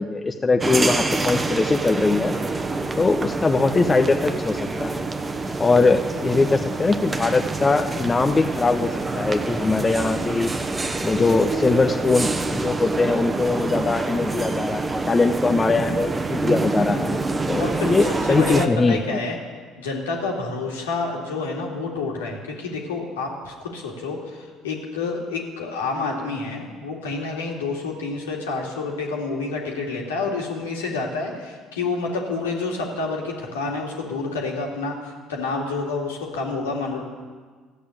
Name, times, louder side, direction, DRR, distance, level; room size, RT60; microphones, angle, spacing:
voice 1, 0.0-2.3 3.0-5.0 5.6-10.5 11.0-17.2 17.5-19.0, left 3 dB, 25° left, 7 dB, 0.8 m, -21 dB
sound 1, 0.6-18.7, right 3 dB, 25° right, 1.0 m, -26 dB
voice 2, 17.6-19.4 19.8-37.0, left 3 dB, 75° left, -1 dB, 2.3 m, -28 dB
14.5 x 8.4 x 8.7 m, 1.5 s
figure-of-eight pair, 55°, 0 cm